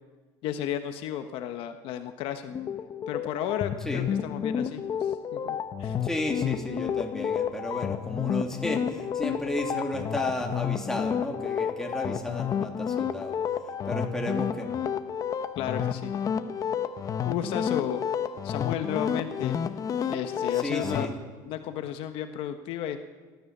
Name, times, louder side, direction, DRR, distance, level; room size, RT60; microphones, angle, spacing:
voice 1, 0.4-2.5 3.1-6.0 15.5-16.1 17.2-18.0 18.4-19.6 20.1-21.1 21.5-23.0, left 10 dB, 65° left, 8 dB, 1.3 m, -33 dB
sound 1, 2.5-21.1, left 8 dB, 35° left, 1.0 m, -30 dB
voice 2, 6.0-14.8 20.5-21.1, left 1 dB, 5° left, 1 dB, 3.0 m, -33 dB
29.5 x 13.0 x 6.8 m, 1.4 s
cardioid pair, 125°, 10 cm